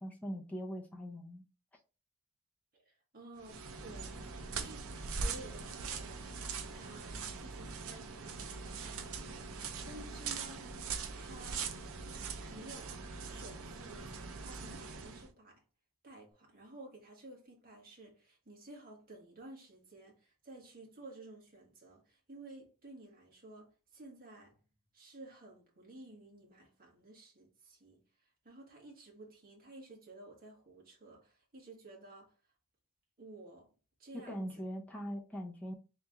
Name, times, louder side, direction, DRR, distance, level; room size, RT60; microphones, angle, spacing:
voice 1, 0.0-1.4 34.3-35.7, equal, 5° left, 0.6 m, -41 dB
voice 2, 2.7-4.2 4.5-4.9 5.2-6.2 6.7-9.4 9.8-10.7 11.1-11.7 12.5-12.9 13.3-15.6 16.0-24.6 24.9-32.3 33.2-33.7 34.0-34.5, right 2 dB, 40° right, 1.5 m, -53 dB
sound 1, 3.4-15.3, right 5 dB, 65° right, 0.6 m, -42 dB
3.3 x 3.0 x 3.5 m
head